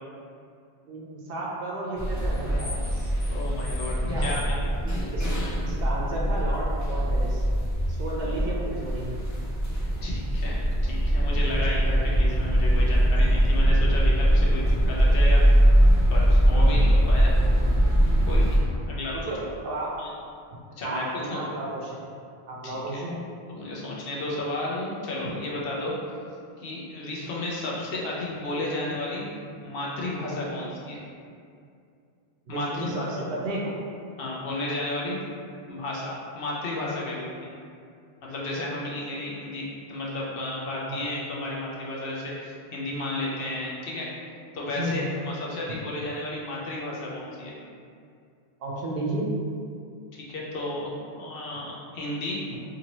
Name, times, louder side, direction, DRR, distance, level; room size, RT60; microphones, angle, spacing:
voice 1, 0.9-3.1 4.1-4.5 5.1-5.3 5.6-7.4 8.0-9.2 16.5-16.8 18.7-20.0 20.8-22.0 22.5-23.2 32.5-33.7 38.5-39.2 40.9-41.0 44.8-45.0 48.6-49.3, right 1 dB, 65° right, -4 dB, 0.7 m, -33 dB
sound 1, 2.0-18.6, equal, 30° left, 0.3 m, -22 dB
voice 2, 3.3-4.6 8.2-8.4 10.0-15.4 16.1-17.4 18.2-19.1 20.0-20.1 20.8-21.0 21.3-21.4 22.6-23.0 23.5-26.0 26.6-29.3 29.6-31.0 32.5-33.1 34.2-35.2 35.7-37.5 38.2-44.1 44.5-47.5 50.1-50.9 51.2-52.4, left 2 dB, 65° left, -5 dB, 0.8 m, -33 dB
2.7 x 2.7 x 2.9 m, 2.4 s
omnidirectional pair, 1.1 m